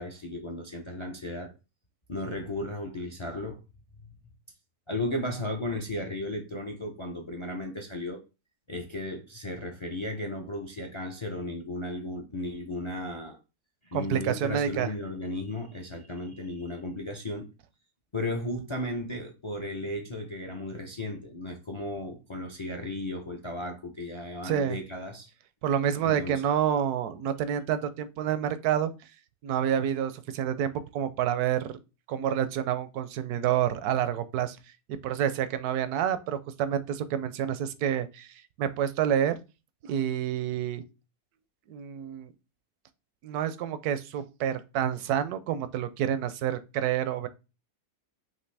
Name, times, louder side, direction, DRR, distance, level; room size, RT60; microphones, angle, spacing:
voice 1, 0.0-1.5 2.1-3.6 4.9-8.2 8.7-13.4 13.8-17.5 18.1-25.3 26.0-26.4, left 1 dB, 50° left, 0.3 m, -35 dB
voice 2, 13.9-14.9 24.4-24.8 25.6-28.9 29.4-31.8 32.1-34.6 34.9-39.4 39.8-40.8 41.7-42.3 43.2-47.3, right 9 dB, 80° right, 1.1 m, -28 dB
5.8 x 2.7 x 3.3 m
omnidirectional pair, 1.6 m